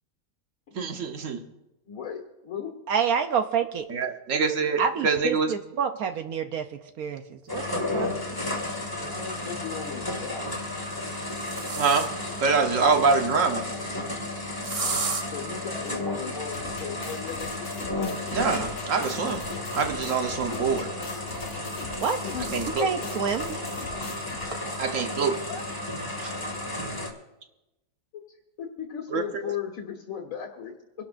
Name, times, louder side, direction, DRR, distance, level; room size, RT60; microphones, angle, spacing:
voice 1, 0.7-1.4 3.9-5.5 11.8-13.6 18.3-19.4 19.7-20.9 22.5-22.9 24.8-25.4 26.2-26.4 29.1-29.2, right 4 dB, 60° right, 1.4 m, -25 dB
voice 2, 1.9-2.7 9.1-10.5 12.8-13.3 15.3-17.5 22.2-22.6 25.1-25.2 25.5-25.7 28.1-28.2 28.6-31.0, left 8 dB, 65° left, 1.9 m, -37 dB
voice 3, 2.9-3.9 4.8-8.1 22.0-22.2 22.8-23.5, right 7 dB, 75° right, 1.2 m, -28 dB
sound 1, 7.5-27.1, left 2 dB, 15° left, 1.9 m, -33 dB
sound 2, 8.3-8.4 9.8-10.2 10.8-12.4 14.6-15.2 17.8-20.5 21.5-22.8 23.3-23.4 23.7-23.8 24.5-24.6 25.0-25.4, right 4 dB, 40° right, 0.5 m, -36 dB
sound 3, 16.5-24.5, left 5 dB, 85° left, 1.7 m, -43 dB
26.0 x 12.0 x 2.6 m
omnidirectional pair, 1.6 m